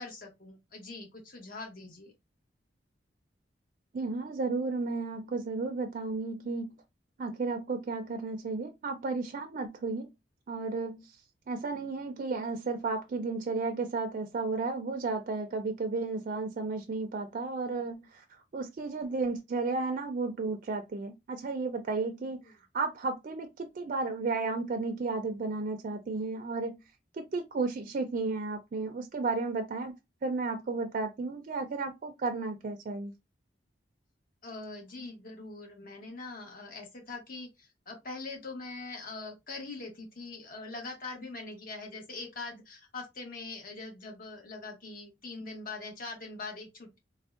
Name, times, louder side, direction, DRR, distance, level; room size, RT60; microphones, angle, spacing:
voice 1, 0.0-2.1 22.4-22.5 34.4-47.0, left 3 dB, 50° left, 1.0 m, -42 dB
voice 2, 3.9-6.8 7.2-10.1 10.5-11.1 11.5-22.4 22.7-26.8 27.1-29.9 30.2-33.1, right 3 dB, 45° right, 0.4 m, -33 dB
3.4 x 2.1 x 2.4 m
head